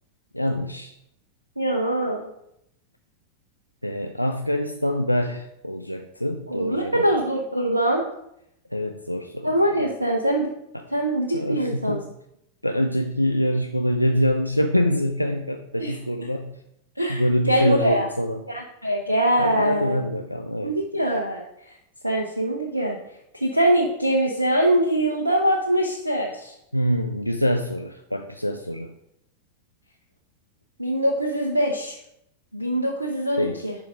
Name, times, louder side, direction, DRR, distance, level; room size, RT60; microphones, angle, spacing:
voice 1, 0.3-0.9 3.8-7.1 8.7-9.5 9.8-9.9 10.7-10.8 11.3-12.1 12.6-16.5 17.1-18.4 19.4-20.7 26.7-28.9 33.4-33.6, equal, 90° left, 4 dB, 0.5 m, -25 dB
voice 2, 1.6-2.3 6.5-8.0 9.4-10.5 10.9-12.0 15.8-15.9 17.0-18.1 18.5-20.0 20.6-21.8 22.0-26.5 30.8-32.0 32.5-33.8, right 1 dB, 85° right, 1 dB, 0.8 m, -23 dB
10.5 x 3.9 x 4.9 m, 0.79 s
figure-of-eight pair, 90°, 0 cm